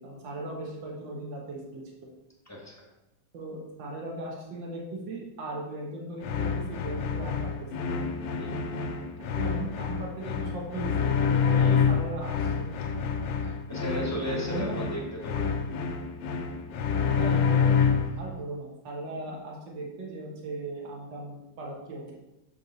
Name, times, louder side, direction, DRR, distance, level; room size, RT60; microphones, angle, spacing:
voice 1, 0.0-1.8 3.3-7.5 9.4-11.1 11.5-12.7 14.1-14.8 17.1-17.5 18.2-22.1, right 2 dB, 75° right, -2 dB, 1.9 m, -38 dB
voice 2, 2.5-2.8 8.3-8.6 11.5-11.9 13.4-15.6, equal, 15° left, -3 dB, 0.7 m, -36 dB
sound 1, 6.2-18.3, left 6 dB, 90° left, 1.3 m, -27 dB
6.5 x 4.4 x 3.9 m, 0.96 s
omnidirectional pair, 2.0 m